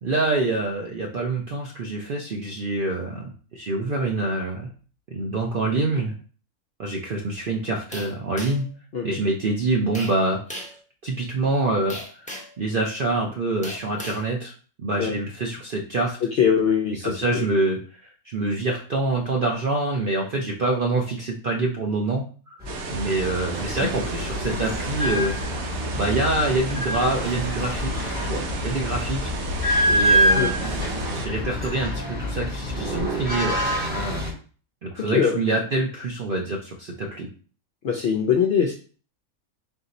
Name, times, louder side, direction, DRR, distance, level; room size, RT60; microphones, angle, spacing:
voice 1, 0.0-4.7 5.1-6.1 6.8-8.7 9.0-10.4 11.0-12.0 12.6-14.5 14.8-16.2 17.0-22.6 22.9-25.6 25.9-29.3 29.9-30.8 31.1-33.6 33.9-34.2 34.8-37.3, right 2 dB, 60° right, 0 dB, 0.5 m, -26 dB
sound 1, 7.9-8.7 9.9-10.2 10.5-10.8 11.9-12.6 13.6-14.2, equal, 10° left, 0.3 m, -36 dB
voice 2, 16.3-17.4 30.3-30.5 35.1-35.4 37.8-38.7, left 7 dB, 65° left, 1 dB, 0.6 m, -22 dB
sound 2, 22.6-34.3, equal, 10° right, 0.8 m, -26 dB
sound 3, 22.7-31.3, right 4 dB, 75° right, 1.1 m, -33 dB
4.0 x 2.7 x 3.9 m, 0.40 s
omnidirectional pair, 1.5 m